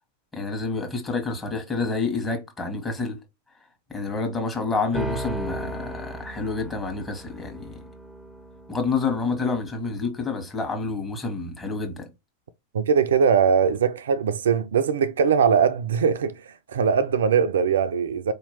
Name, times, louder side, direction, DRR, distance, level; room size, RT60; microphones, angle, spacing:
voice 1, 0.3-3.2 3.9-7.8 8.7-12.1, left 4 dB, 15° left, 1.2 m, -28 dB
sound 1, 4.9-9.9, right 1 dB, 5° right, 0.6 m, -36 dB
voice 2, 12.7-18.3, right 6 dB, 65° right, 0.4 m, -21 dB
4.3 x 2.9 x 2.9 m
figure-of-eight pair, 90°, 0 cm